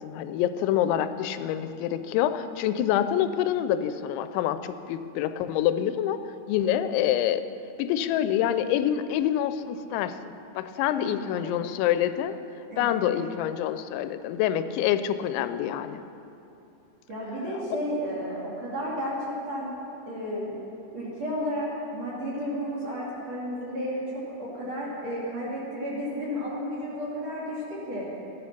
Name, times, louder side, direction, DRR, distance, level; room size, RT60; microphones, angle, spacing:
voice 1, 0.0-6.2 6.5-7.4 7.8-10.2 10.6-12.4 12.8-16.0, left 11 dB, 85° left, 11 dB, 2.9 m, -26 dB
voice 2, 10.9-11.6 12.7-13.1 17.1-19.2 19.5-19.7 20.1-20.6 20.9-24.0 24.4-28.1, equal, 45° right, -6 dB, 2.8 m, -32 dB
14.0 x 11.0 x 5.9 m, 2.9 s
omnidirectional pair, 5.3 m